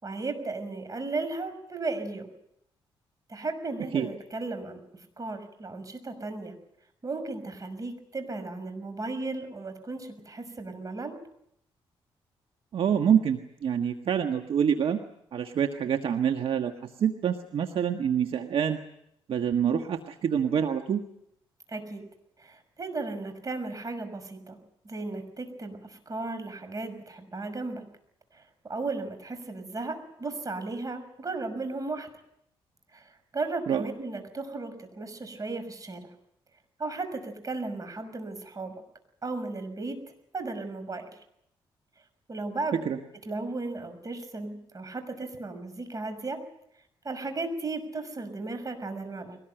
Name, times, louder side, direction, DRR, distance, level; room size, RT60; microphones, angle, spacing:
voice 1, 0.0-2.3 3.3-4.8 5.2-6.5 7.0-11.2 21.7-22.0 22.4-24.6 24.8-27.8 28.3-32.1 32.9-36.1 36.8-38.8 39.2-40.0 40.3-41.1 42.3-42.8 43.3-46.4 47.0-49.4, right 3 dB, 35° right, 9 dB, 6.0 m, -35 dB
voice 2, 12.7-15.0 15.3-16.7 17.0-18.8 19.3-21.0 33.7-33.8 42.7-43.0, right 8 dB, 65° right, 5 dB, 1.5 m, -26 dB
22.5 x 19.5 x 9.0 m, 0.77 s
cardioid pair, 75°, 10 cm